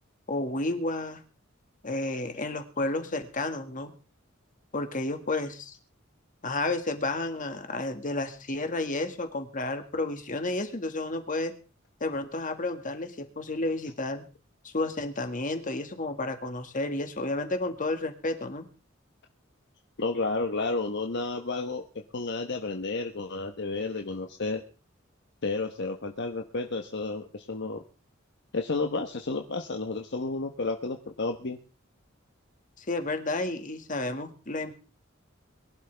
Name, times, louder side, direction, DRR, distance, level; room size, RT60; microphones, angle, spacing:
voice 1, 0.3-1.2 1.8-3.9 4.7-5.7 6.4-11.5 12.0-14.2 14.6-18.7 32.8-34.8, left 2 dB, 40° left, 6 dB, 2.0 m, -31 dB
voice 2, 20.0-21.8 22.1-24.6 25.4-27.8 28.5-31.6, left 3 dB, 60° left, 4 dB, 1.1 m, -31 dB
22.5 x 11.5 x 3.5 m, 0.35 s
head